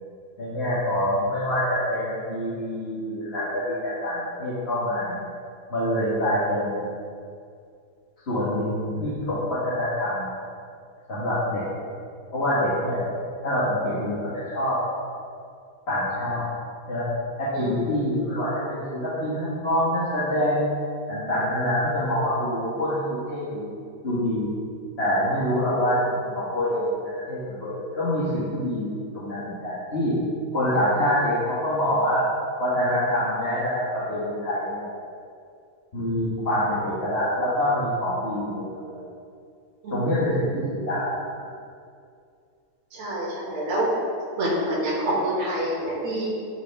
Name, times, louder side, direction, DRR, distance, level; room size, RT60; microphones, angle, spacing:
voice 1, 0.4-5.3 5.7-6.9 8.3-10.3 11.1-11.6 12.3-13.1 13.4-14.8 15.9-16.4 16.9-17.1 17.4-20.7 21.1-23.7 24.0-24.5 25.0-26.9 27.3-28.9 29.1-30.1 30.5-32.2 32.6-34.9 35.9-39.0 39.9-41.2, equal, 35° left, -9 dB, 1.5 m, -25 dB
voice 2, 42.9-43.9 44.4-46.3, right 1 dB, 75° right, -7 dB, 2.6 m, -27 dB
11.0 x 5.9 x 3.5 m, 2.3 s
omnidirectional pair, 2.4 m